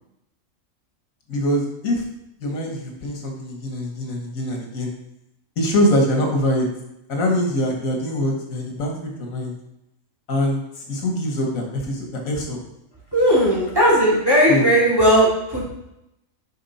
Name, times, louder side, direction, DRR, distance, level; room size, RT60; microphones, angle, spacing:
voice 1, 1.3-2.0 2.4-4.9 5.6-6.7 7.1-9.6 10.3-12.6 14.5-14.7, equal, 85° left, 1 dB, 1.8 m, -23 dB
voice 2, 13.1-15.7, equal, 15° right, -6 dB, 2.7 m, -17 dB
7.2 x 5.2 x 4.2 m, 0.86 s
omnidirectional pair, 1.4 m